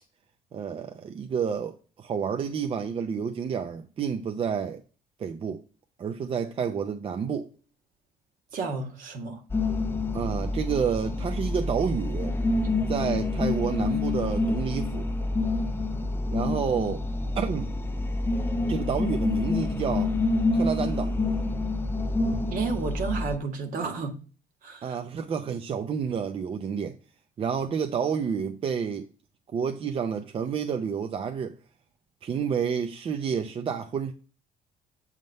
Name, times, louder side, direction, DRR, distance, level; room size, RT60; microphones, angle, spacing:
voice 1, 0.5-4.8 5.2-5.6 6.0-7.5 10.1-12.3 12.9-15.1 16.3-17.0 17.4-17.7 18.7-20.1 20.5-21.2 24.8-27.0 27.4-29.1 29.5-31.6 32.2-34.1, right 7 dB, 35° right, 0.6 m, -29 dB
voice 2, 8.5-9.4 13.0-13.1 22.5-24.1 24.6-25.0, right 4 dB, 60° right, 1.7 m, -31 dB
sound 1, 9.5-23.4, left 2 dB, 15° left, 0.6 m, -27 dB
7.8 x 3.7 x 5.4 m
cardioid pair, 120°, 15 cm